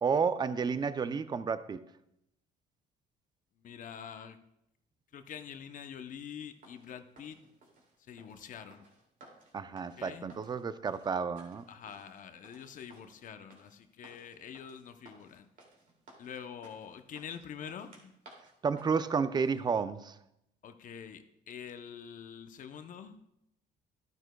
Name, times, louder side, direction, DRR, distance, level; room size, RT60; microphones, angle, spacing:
voice 1, 0.0-1.8 9.5-11.6 18.6-20.1, right 5 dB, 25° right, 13 dB, 0.5 m, -31 dB
voice 2, 3.6-4.4 5.1-7.4 8.0-8.9 10.0-10.3 11.7-15.5 16.2-18.1 20.6-23.2, left 8 dB, 50° left, 9 dB, 0.7 m, -46 dB
sound 1, 6.4-19.6, right 2 dB, 50° right, 2.4 m, -59 dB
12.5 x 9.2 x 2.2 m, 0.80 s
cardioid pair, 110°, 17 cm